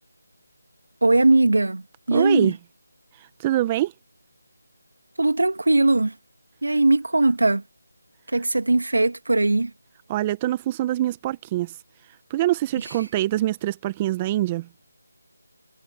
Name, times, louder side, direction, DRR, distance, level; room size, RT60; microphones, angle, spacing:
voice 1, 1.0-2.5 5.2-6.1 6.6-7.6 8.3-9.7, right 2 dB, 85° right, 2.3 m, -20 dB
voice 2, 2.1-2.6 3.2-3.9 10.1-11.7 12.3-14.7, right 14 dB, 15° right, 0.8 m, -24 dB
figure-of-eight pair, 170°, 0 cm